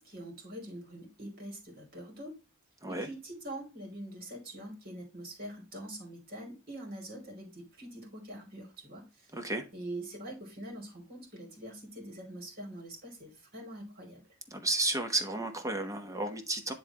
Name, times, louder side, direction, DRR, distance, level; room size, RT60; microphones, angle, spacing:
voice 1, 0.0-2.4 2.9-9.3 9.7-14.2, right 1 dB, 45° right, 2.7 m, -44 dB
voice 2, 9.3-9.6 14.5-16.7, right 2 dB, 15° right, 1.0 m, -32 dB
9.9 x 3.6 x 2.9 m
head